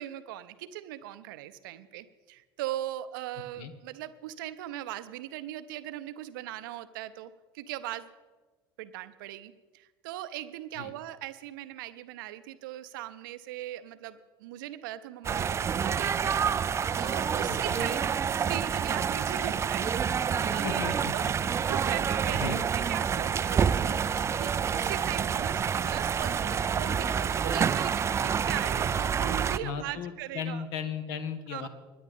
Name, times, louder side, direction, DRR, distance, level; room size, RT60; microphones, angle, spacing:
voice 1, 0.0-8.1 8.8-30.6 31.5-31.7, right 13 dB, 60° right, 13 dB, 0.7 m, -39 dB
sound 1, 15.2-29.6, right 7 dB, 20° right, 0.4 m, -28 dB
voice 2, 17.5-17.9 20.6-21.3 22.3-22.6 29.6-31.7, left 6 dB, 60° left, 10 dB, 1.2 m, -36 dB
25.0 x 10.0 x 3.6 m, 1.3 s
figure-of-eight pair, 65°, 12 cm